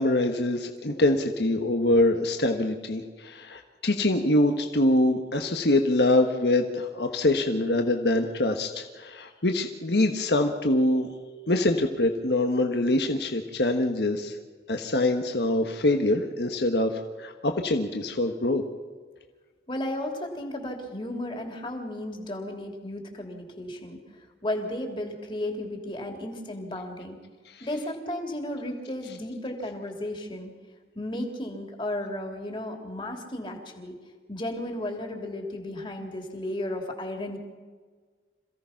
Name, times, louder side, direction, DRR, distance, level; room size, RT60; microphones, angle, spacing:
voice 1, 0.0-11.1 11.5-14.4 14.7-18.6 27.5-27.7, left 1 dB, 75° left, 4 dB, 1.4 m, -24 dB
voice 2, 19.7-27.2 27.6-30.5 30.9-33.9 34.3-37.4, left 1 dB, 30° left, 2 dB, 3.2 m, -34 dB
27.0 x 16.5 x 5.9 m, 1.5 s
head